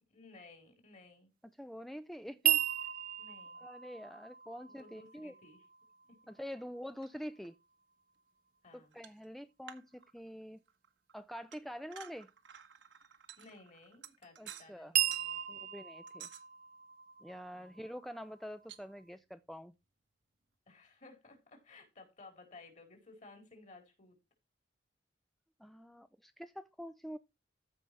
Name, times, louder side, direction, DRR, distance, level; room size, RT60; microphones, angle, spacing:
voice 1, 0.1-1.3 3.2-3.6 4.7-5.6 6.1-6.2 8.6-9.0 13.4-15.6 17.5-17.8 20.7-24.2, left 3 dB, 45° left, 4.1 m, -57 dB
voice 2, 1.6-2.6 3.6-5.3 6.3-7.5 8.7-10.6 11.1-12.3 14.4-14.9 15.5-16.3 17.2-19.7 25.6-27.2, equal, ahead, 0.5 m, -46 dB
sound 1, 2.4-6.5 14.9-18.7, right 12 dB, 55° right, 1.2 m, -36 dB
sound 2, 6.9-7.2 7.4-7.5 8.9-9.3 9.7-10.4 10.7-14.8 15.1-15.3 16.1-16.4 18.7-18.8, right 10 dB, 85° right, 1.4 m, -53 dB
14.0 x 5.6 x 4.7 m
head